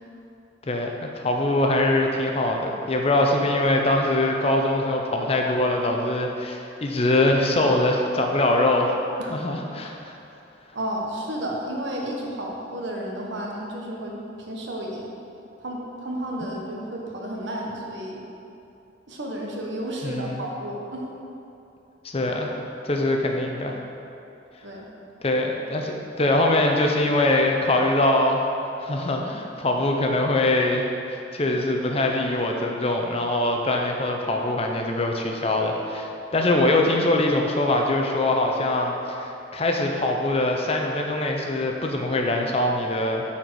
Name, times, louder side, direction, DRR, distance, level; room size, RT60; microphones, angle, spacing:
voice 1, 0.7-8.9 9.3-10.1 20.0-20.4 22.0-22.5 22.8-23.8 25.2-28.4 28.8-43.2, left 1 dB, 30° left, 2 dB, 0.6 m, -23 dB
voice 2, 10.7-15.1 15.6-18.2 19.1-21.0 24.6-24.9, right 1 dB, 70° right, -1 dB, 1.2 m, -32 dB
8.9 x 4.4 x 4.7 m, 2.8 s
head